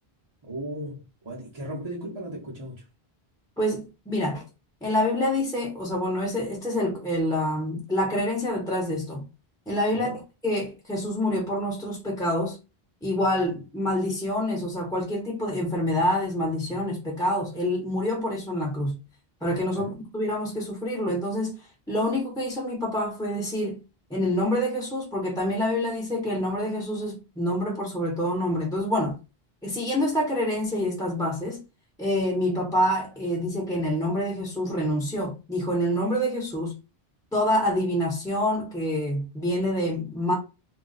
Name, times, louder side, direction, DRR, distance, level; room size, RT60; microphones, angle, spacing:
voice 1, 0.4-2.9 9.9-10.2 19.7-19.9, right 1 dB, 30° right, 0.7 m, -36 dB
voice 2, 3.6-4.4 4.8-9.2 9.7-10.1 10.4-12.6 13.0-19.0 19.4-21.5 21.9-23.8 24.1-29.2 29.6-31.6 32.0-36.8 37.3-40.3, left 1 dB, 5° left, 0.8 m, -27 dB
2.4 x 2.2 x 3.8 m
omnidirectional pair, 1.0 m